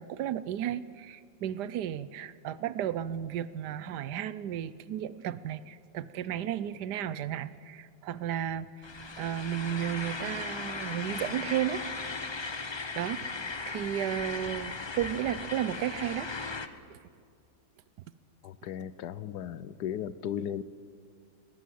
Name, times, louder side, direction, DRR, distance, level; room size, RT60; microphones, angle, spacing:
voice 1, 0.0-8.7 9.2-11.9 13.0-13.3 13.7-16.3 16.9-17.0, right 10 dB, 80° right, 16 dB, 1.3 m, -33 dB
sound 1, 8.8-16.7, left 4 dB, 40° left, 0.4 m, -37 dB
voice 2, 18.4-20.6, left 9 dB, 75° left, 16 dB, 1.2 m, -36 dB
22.0 x 17.5 x 7.7 m, 2.3 s
omnidirectional pair, 1.8 m